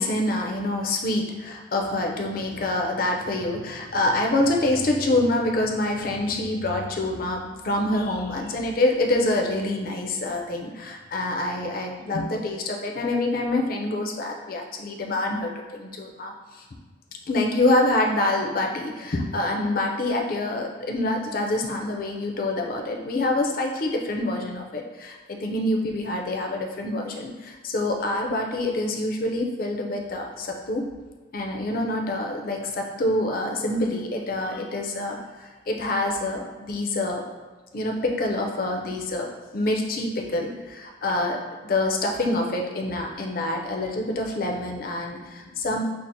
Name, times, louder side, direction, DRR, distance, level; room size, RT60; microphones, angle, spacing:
voice 1, 0.0-16.6 17.3-30.9 31.3-37.2 37.7-45.8, left 2 dB, 45° left, 1 dB, 0.4 m, -26 dB
5.7 x 2.0 x 2.6 m, 1.3 s
head